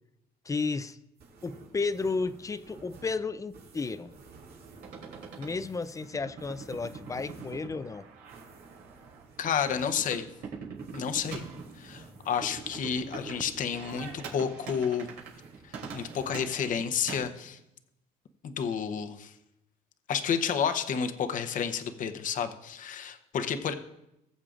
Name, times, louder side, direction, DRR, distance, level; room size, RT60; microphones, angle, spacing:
voice 1, 0.5-1.0 1.4-4.1 5.4-8.1, left 4 dB, 20° left, 14 dB, 0.4 m, -33 dB
sound 1, 1.2-14.7 15.0-16.5, right 3 dB, 65° right, 2.5 m, -53 dB
sound 2, 4.8-17.2, right 5 dB, 85° right, 2.9 m, -44 dB
voice 2, 9.4-10.3 10.9-11.4 11.8-15.2 15.9-17.6 18.4-19.3 20.1-23.7, left 7 dB, 50° left, 7 dB, 0.8 m, -30 dB
20.0 x 7.4 x 2.5 m, 0.86 s
cardioid pair, 110°, 17 cm